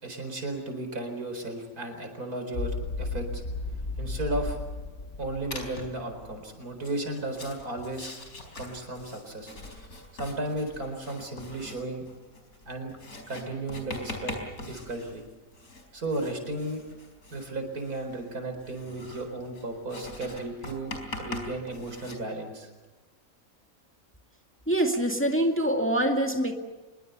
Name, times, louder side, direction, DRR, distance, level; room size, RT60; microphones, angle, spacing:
voice 1, 0.0-3.4 4.0-4.6 5.2-8.1 8.5-9.5 10.1-12.0 12.6-12.9 13.3-15.3 15.9-16.8 17.3-22.7, right 2 dB, 85° right, 6 dB, 4.9 m, -34 dB
sound 1, 2.5-6.4, left 3 dB, 50° left, 2.0 m, -34 dB
Writing, 5.5-6.0 6.7-22.2, left 2 dB, 90° left, 4.9 m, -42 dB
voice 2, 24.7-26.5, right 1 dB, 10° left, 3 dB, 2.1 m, -25 dB
26.0 x 22.0 x 6.9 m, 1.2 s
omnidirectional pair, 1.5 m